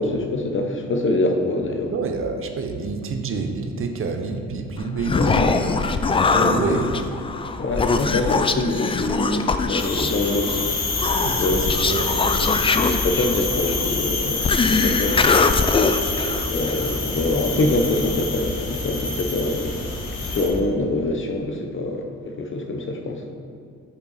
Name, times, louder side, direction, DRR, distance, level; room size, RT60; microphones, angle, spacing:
voice 1, 0.0-1.9 5.1-5.9 6.2-6.8 7.6-10.5 11.4-11.7 12.7-15.3 16.4-19.8 20.2-22.1 22.4-23.2, left 2 dB, 40° left, 3 dB, 0.8 m, -24 dB
voice 2, 1.9-5.5 6.3-7.0 11.2-12.6 17.0-17.2 17.5-17.7, right 4 dB, 45° right, 5 dB, 0.7 m, -28 dB
Human voice, 4.8-17.0, left 4 dB, 20° left, 0.3 m, -22 dB
sound 1, 9.8-20.5, left 3 dB, 60° left, 1.5 m, -27 dB
6.7 x 5.6 x 4.1 m, 2.4 s
cardioid pair, 90°, 30 cm